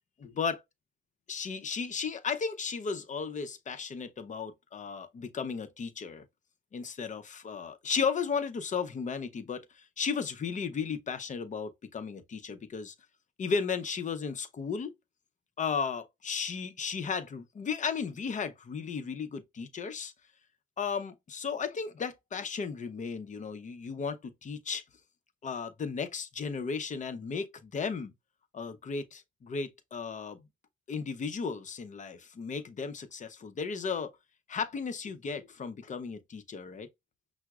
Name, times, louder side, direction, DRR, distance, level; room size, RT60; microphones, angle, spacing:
voice 1, 0.2-0.6 1.3-6.2 6.7-12.9 13.4-14.9 15.6-20.1 20.8-24.8 25.4-28.1 28.5-30.4 30.9-34.1 34.5-36.9, left 5 dB, 40° left, 0.6 m, -35 dB
5.7 x 2.0 x 2.3 m
cardioid pair, 90°, 20 cm